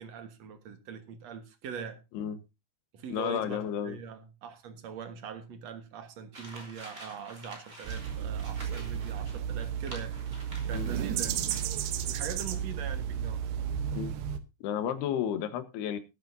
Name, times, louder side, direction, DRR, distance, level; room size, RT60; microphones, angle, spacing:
voice 1, 0.0-2.0 2.9-10.1 10.7-11.3 12.0-13.4, right 7 dB, 60° right, 1.9 m, -42 dB
voice 2, 3.1-4.0 10.7-10.9 13.9-14.1 14.6-16.0, left 9 dB, 80° left, 3.3 m, -32 dB
sound 1, 6.3-11.1 11.5-12.0, right 1 dB, 15° right, 3.2 m, -49 dB
sound 2, 7.8-14.4, right 9 dB, 90° right, 3.2 m, -33 dB
20.5 x 9.2 x 2.7 m
omnidirectional pair, 4.6 m